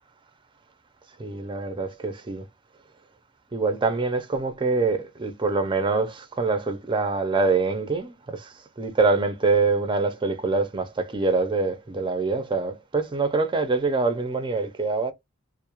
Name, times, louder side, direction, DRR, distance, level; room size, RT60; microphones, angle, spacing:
voice 1, 1.2-2.4 3.5-15.1, right 3 dB, 25° right, 0.5 m, -25 dB
2.3 x 2.0 x 2.9 m
head